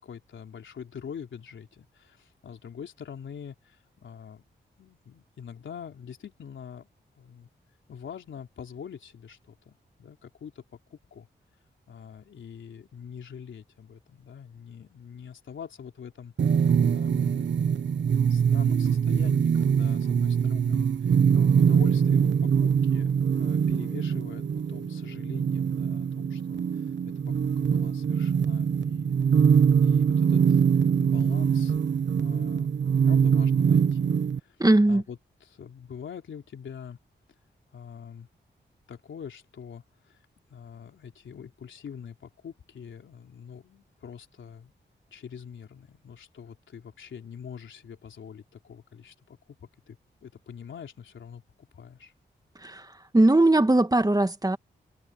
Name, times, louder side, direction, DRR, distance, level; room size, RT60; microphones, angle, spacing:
voice 1, 0.0-4.4 4.8-6.9 7.2-7.5 7.9-10.6 10.9-11.3 11.9-17.5 18.1-26.6 27.0-29.2 29.8-30.6 31.0-31.7 32.2-34.6 34.9-37.0 37.7-38.3 38.9-40.2 40.5-44.7 45.1-52.1, left 7 dB, 80° left, 3.6 m, -44 dB
sound 1, 16.4-34.4, right 7 dB, 70° right, 1.1 m, -23 dB
voice 2, 34.6-35.0 52.6-54.6, right 2 dB, 20° right, 1.9 m, -20 dB
cardioid pair, 50°, 19 cm